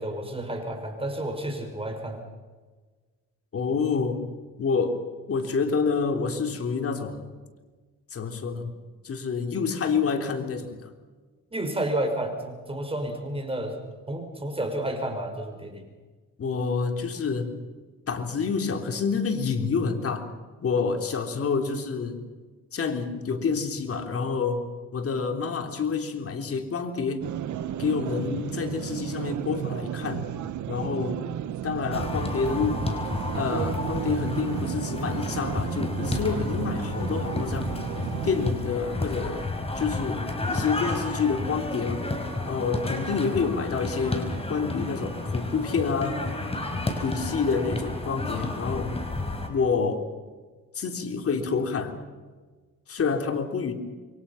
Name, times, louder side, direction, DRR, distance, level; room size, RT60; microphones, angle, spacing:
voice 1, 0.0-2.2 11.5-13.8 14.1-15.8, right 1 dB, 20° right, 4 dB, 5.7 m, -31 dB
voice 2, 3.5-4.3 4.6-5.0 5.3-7.2 8.1-8.7 9.0-10.9 16.4-17.6 18.1-20.3 20.6-22.2 22.7-24.6 24.9-27.3 27.8-30.3 30.7-31.2 31.6-32.9 33.3-37.7 38.2-39.5 39.7-42.1 42.4-46.2 47.0-49.0 49.5-50.1 50.7-52.0 52.9-53.7, left 5 dB, 50° left, 5 dB, 3.5 m, -28 dB
sound 1, 27.2-38.5, right 11 dB, 70° right, 1.2 m, -33 dB
sound 2, 31.9-49.5, left 2 dB, 20° left, 5.0 m, -31 dB
28.0 x 23.5 x 5.8 m, 1.4 s
cardioid pair, 90°, 30 cm